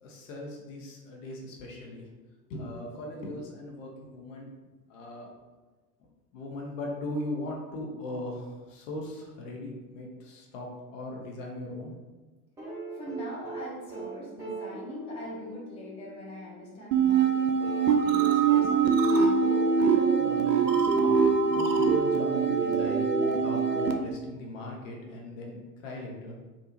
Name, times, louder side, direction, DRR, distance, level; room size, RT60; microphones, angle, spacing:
voice 1, 0.0-2.1 2.5-4.5 4.9-5.3 6.3-11.9 20.2-26.4, left 1 dB, 50° left, -1 dB, 0.8 m, -39 dB
sound 1, 12.6-16.7 17.6-21.2 22.6-22.7, right 3 dB, 10° right, 0.3 m, -41 dB
voice 2, 12.9-17.5 17.9-19.4, equal, 10° left, -5 dB, 0.7 m, -42 dB
sound 2, 16.9-23.9, right 5 dB, 80° right, 0.5 m, -23 dB
3.6 x 2.4 x 3.0 m, 1.3 s
figure-of-eight pair, 85°, 49 cm